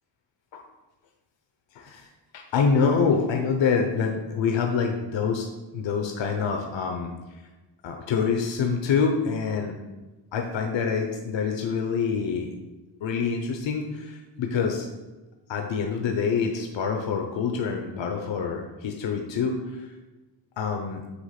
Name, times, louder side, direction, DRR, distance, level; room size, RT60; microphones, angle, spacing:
voice 1, 1.7-2.1 2.3-5.5 5.7-7.1 7.8-9.8 10.3-12.5 13.0-14.9 15.5-19.9 20.6-21.0, left 5 dB, 80° left, 3 dB, 0.8 m, -26 dB
8.3 x 3.0 x 5.8 m, 1.2 s
wide cardioid pair, 115°, 44 cm